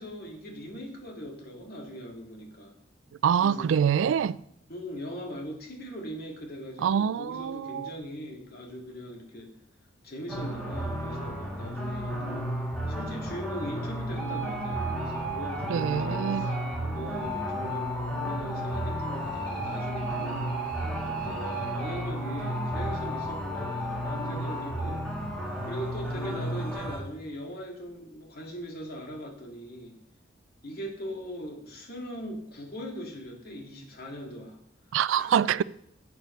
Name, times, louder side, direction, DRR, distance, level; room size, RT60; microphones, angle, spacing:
voice 1, 0.0-2.7 3.4-3.8 4.7-9.5 10.0-12.5 12.9-16.6 16.9-20.5 21.0-25.1 25.7-30.0 30.6-34.6 35.1-35.3, equal, 55° left, 2.2 m, -40 dB
voice 2, 3.2-4.4 6.8-7.9 15.7-16.5 34.9-35.6, right 8 dB, 90° right, 0.3 m, -25 dB
sound 1, 10.3-27.0, right 1 dB, 5° left, 2.9 m, -32 dB
11.5 x 8.2 x 3.2 m
head